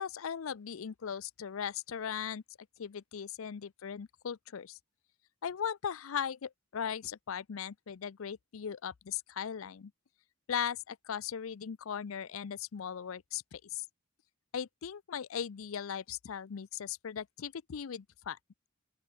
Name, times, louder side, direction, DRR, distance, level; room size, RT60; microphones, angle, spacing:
voice 1, 0.0-2.4 2.8-4.8 5.4-9.9 10.5-13.8 14.5-18.4, left 8 dB, 80° left, 0.5 m, -38 dB
open air
head